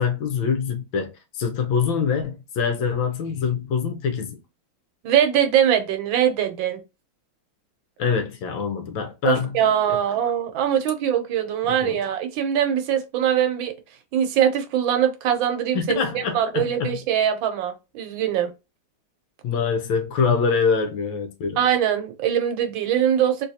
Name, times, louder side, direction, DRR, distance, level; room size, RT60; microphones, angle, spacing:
voice 1, 0.0-4.4 8.0-9.5 9.9-10.0 11.7-12.0 15.7-17.0 19.4-21.6, left 6 dB, 75° left, 1.4 m, -24 dB
voice 2, 5.0-6.8 9.2-13.7 14.1-18.5 21.6-23.5, right 9 dB, 75° right, 1.4 m, -22 dB
3.9 x 2.6 x 2.7 m
omnidirectional pair, 2.3 m